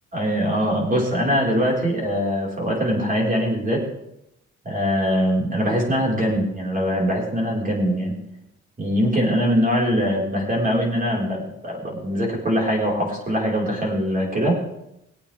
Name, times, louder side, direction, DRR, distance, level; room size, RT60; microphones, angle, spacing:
voice 1, 0.1-3.8 4.6-8.1 8.8-14.6, equal, 30° right, -2 dB, 4.8 m, -22 dB
20.0 x 8.6 x 3.5 m, 0.82 s
cardioid pair, 90°, 30 cm